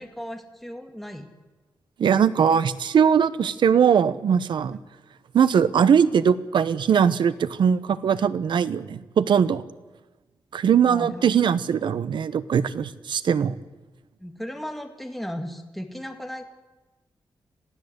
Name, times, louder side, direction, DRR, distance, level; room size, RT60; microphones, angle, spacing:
voice 1, 0.0-1.3 10.8-11.3 14.2-16.4, equal, ahead, 5 dB, 2.1 m, -35 dB
voice 2, 2.0-4.8 5.3-9.6 10.5-13.6, right 7 dB, 80° right, 15 dB, 1.0 m, -20 dB
27.0 x 16.0 x 8.1 m, 1.1 s
wide cardioid pair, 125°, 8 cm